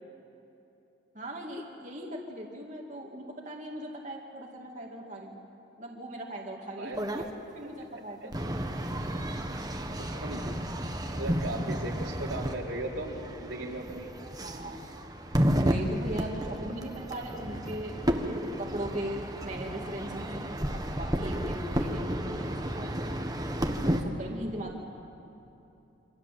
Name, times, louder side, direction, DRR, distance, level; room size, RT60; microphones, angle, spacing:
voice 1, 1.1-5.4 5.8-7.2 7.5-8.3 8.6-8.7 14.4-14.8 15.5-23.2 23.8-24.8, right 1 dB, 40° right, -1 dB, 2.2 m, -39 dB
sound 1, 6.9-7.3 8.3-24.0, equal, 20° right, 1.4 m, -32 dB
voice 2, 10.0-10.5 11.1-14.1, right 1 dB, 80° right, -2 dB, 3.9 m, -37 dB
27.5 x 25.5 x 7.7 m, 2.9 s
head